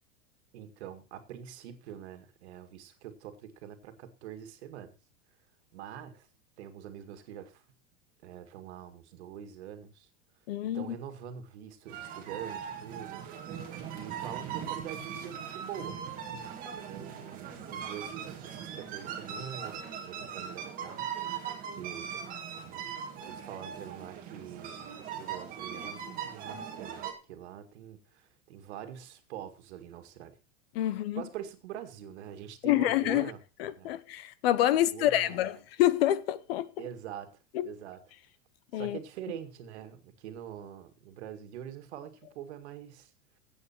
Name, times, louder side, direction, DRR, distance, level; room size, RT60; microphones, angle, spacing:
voice 1, 0.5-4.9 5.7-6.3 6.6-7.6 8.2-10.1 10.6-13.2 13.6-16.0 16.6-22.1 22.5-30.4 31.2-33.4 33.8-33.9 34.7-35.6 36.8-38.0 38.7-43.1, right 10 dB, 60° right, 2.1 m, -45 dB
voice 2, 10.5-10.9 30.7-31.2 32.6-33.3 33.6-36.7 37.5-37.7 38.7-39.0, left 13 dB, 50° left, 0.8 m, -27 dB
sound 1, 11.9-27.1, right 8 dB, 20° right, 2.0 m, -40 dB
14.5 x 8.4 x 4.5 m
supercardioid pair, 175°, 37 cm